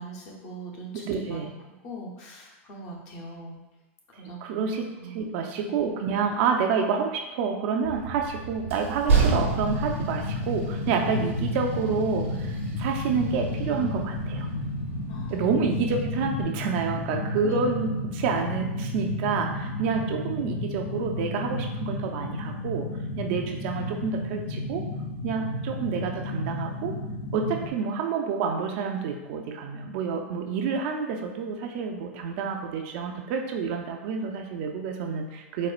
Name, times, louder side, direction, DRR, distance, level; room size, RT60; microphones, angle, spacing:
voice 1, 0.0-1.4 1.7-3.6 4.1-4.6 5.0-5.3 15.1-15.5 17.4-17.5, right 1 dB, 45° left, -1 dB, 0.8 m, -41 dB
voice 2, 1.0-1.5 4.4-14.5 15.3-22.9 23.2-24.9 25.2-27.0 27.3-35.7, right 5 dB, 55° right, 3 dB, 0.4 m, -28 dB
Train, 7.8-16.4, right 5 dB, 85° right, 0.9 m, -31 dB
sound 1, 9.1-27.7, left 2 dB, 75° left, 0.5 m, -32 dB
4.2 x 2.1 x 2.4 m, 1.0 s
hypercardioid pair, 120°, 7 cm